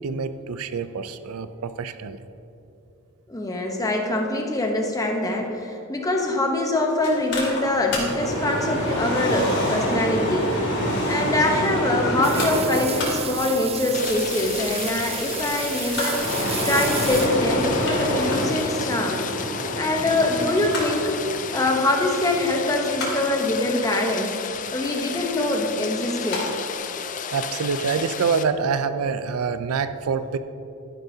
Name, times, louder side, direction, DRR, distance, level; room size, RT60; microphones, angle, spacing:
voice 1, 0.0-2.2 27.3-30.4, right 5 dB, 75° right, 11 dB, 0.4 m, -26 dB
voice 2, 3.3-10.5 11.1-16.2 16.6-19.2 19.8-21.2 21.5-24.3 24.7-26.5, left 1 dB, 15° left, 2 dB, 0.9 m, -24 dB
Mechanical fan, 7.0-26.4 26.7-26.8, equal, 55° left, 2.4 m, -28 dB
sound 1, 12.2-17.7, right 6 dB, 30° right, 0.7 m, -32 dB
Rain, 13.9-28.4, left 8 dB, 35° left, 0.4 m, -33 dB
12.0 x 10.5 x 2.8 m, 2.8 s
head